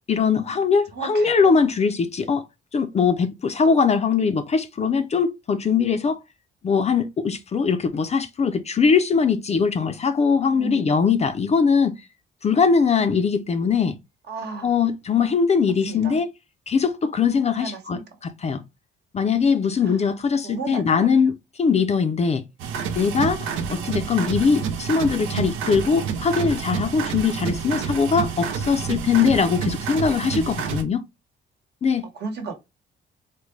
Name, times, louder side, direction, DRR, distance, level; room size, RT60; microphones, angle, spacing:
voice 1, 0.1-2.5 2.7-6.2 6.6-12.0 12.4-13.9 14.6-16.3 16.7-18.6 19.1-21.3 21.6-22.4 23.0-31.0 31.8-32.0, left 5 dB, 35° left, 0.4 m, -21 dB
voice 2, 0.9-1.3 10.5-11.0 14.3-14.7 15.9-16.2 17.5-18.0 20.4-21.1 21.8-21.9 23.6-24.0 32.2-32.5, right 3 dB, 55° right, 1.1 m, -34 dB
sound 1, 22.6-30.8, right 7 dB, 90° right, 0.6 m, -28 dB
3.7 x 2.1 x 3.1 m
cardioid pair, 90°, 20 cm